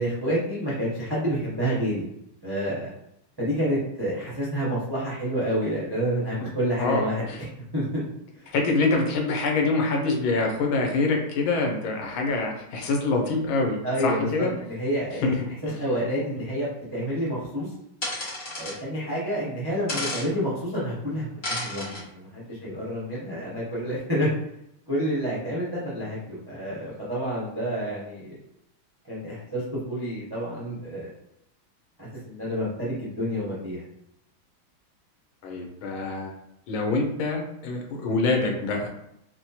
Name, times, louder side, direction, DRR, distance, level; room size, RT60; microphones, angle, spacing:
voice 1, 0.0-2.0 2.4-2.9 3.4-7.4 7.7-7.9 8.4-8.5 13.8-15.3 15.6-17.7 18.6-24.3 24.9-28.4 29.1-31.1 32.0-33.8, equal, 30° right, -7 dB, 0.4 m, -29 dB
voice 2, 6.8-7.4 8.5-14.5 15.2-15.4 35.4-36.3 36.7-38.9, left 3 dB, 75° left, 1 dB, 1.5 m, -25 dB
sound 1, 18.0-18.8 19.9-20.3 21.4-22.0, left 2 dB, 35° left, 1.0 m, -31 dB
4.3 x 2.1 x 2.8 m, 0.79 s
omnidirectional pair, 2.3 m